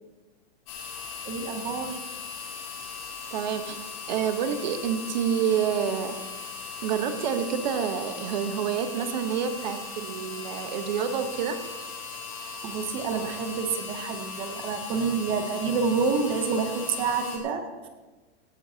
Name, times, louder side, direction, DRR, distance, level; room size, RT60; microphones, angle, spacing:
sound 1, 0.7-17.4, left 5 dB, 30° left, 2.5 m, -38 dB
voice 1, 1.3-2.0 12.6-17.7, right 5 dB, 15° right, 7 dB, 0.7 m, -28 dB
voice 2, 3.3-6.2 6.8-11.6, right 8 dB, 45° right, 8 dB, 1.0 m, -28 dB
17.0 x 14.5 x 2.8 m, 1.2 s
supercardioid pair, 175°, 31 cm